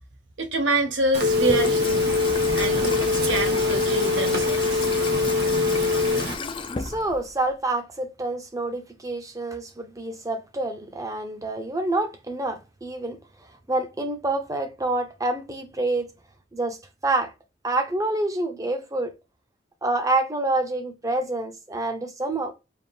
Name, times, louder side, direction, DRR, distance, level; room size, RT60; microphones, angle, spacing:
voice 1, 0.4-2.1 2.6-4.9, right 2 dB, 90° right, 0.9 m, -26 dB
Telephone, 1.1-6.3, left 3 dB, 60° right, 1.0 m, -23 dB
Water tap faucet / Sink (filling or washing), 1.2-7.5, left 4 dB, 30° left, 0.4 m, -35 dB
voice 2, 6.8-13.2 13.7-16.1 16.5-17.3 17.6-19.2 19.8-22.5, right 2 dB, 20° right, 0.6 m, -27 dB
3.4 x 2.5 x 4.1 m
head